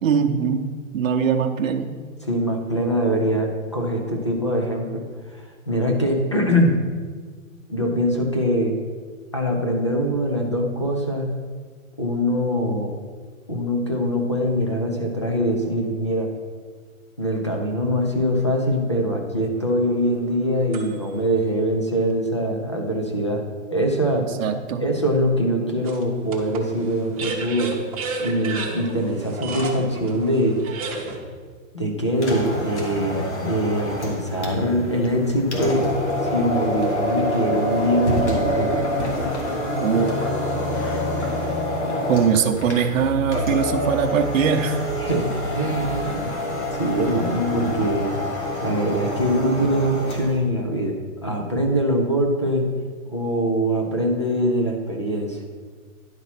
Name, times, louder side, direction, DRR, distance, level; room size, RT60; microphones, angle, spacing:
voice 1, 0.0-0.7 0.9-1.9 24.2-24.8 39.7-40.1 42.1-44.8, right 7 dB, 65° right, 4 dB, 0.8 m, -21 dB
voice 2, 2.2-5.0 5.3-6.8 7.7-8.8 9.3-11.3 12.0-12.9 13.5-16.3 17.2-23.4 23.7-24.3 24.8-27.8 28.2-30.6 31.7-35.8 36.2-38.7 45.0-45.3 45.5-46.3 46.7-48.2 48.6-52.7 53.1-55.4, equal, 20° left, 1 dB, 0.4 m, -23 dB
sound 1, 19.6-21.3 21.9-22.0 25.8-31.2, right 4 dB, 25° right, 0.8 m, -33 dB
sound 2, 32.1-50.4, left 1 dB, 55° left, 1.7 m, -26 dB
10.5 x 4.1 x 5.8 m, 1.6 s
hypercardioid pair, 180°, 42 cm